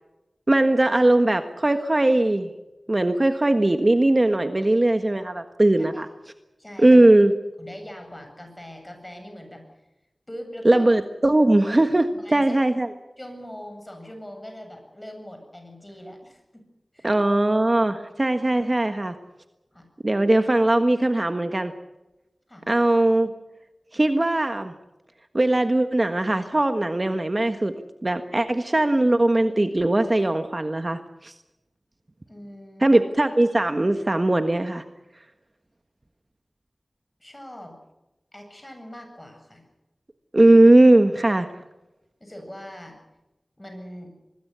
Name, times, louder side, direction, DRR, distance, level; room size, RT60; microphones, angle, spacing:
voice 1, 0.5-2.5 2.9-6.1 6.8-7.3 10.6-12.9 17.0-19.1 20.0-21.7 22.7-23.3 23.9-24.7 25.3-27.7 28.0-31.3 32.8-34.8 40.3-41.5, right 1 dB, 35° right, 7 dB, 1.5 m, -19 dB
voice 2, 6.6-7.1 7.6-9.6 10.3-10.9 12.1-12.6 13.2-16.6 16.9-17.1 19.7-19.9 22.5-22.7 32.3-33.0 37.2-37.7 38.3-39.6 42.2-43.0 43.6-44.1, equal, 15° left, 5 dB, 8.0 m, -41 dB
25.5 x 21.0 x 7.0 m, 0.99 s
wide cardioid pair, 80°, 0 cm